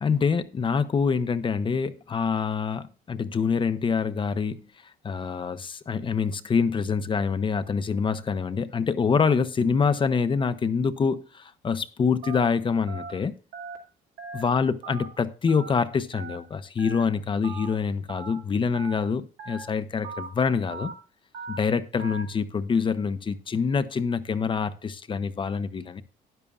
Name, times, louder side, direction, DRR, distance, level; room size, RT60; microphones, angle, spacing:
voice 1, 0.0-4.6 5.0-13.3 14.3-20.9 21.5-26.0, left 5 dB, 30° left, 0.7 m, -26 dB
Telephone, 12.2-12.5 12.9-13.1 13.5-13.8 14.2-14.4 14.8-15.1 15.5-15.7 16.1-16.4 16.8-17.0 17.4-17.7 18.1-18.3 18.7-19.0 19.4-19.6 20.0-20.3 20.7-20.9 21.3-21.6 22.0-22.2, right 5 dB, 90° right, 2.2 m, -38 dB
12.5 x 9.9 x 2.4 m
cardioid pair, 110°, 17 cm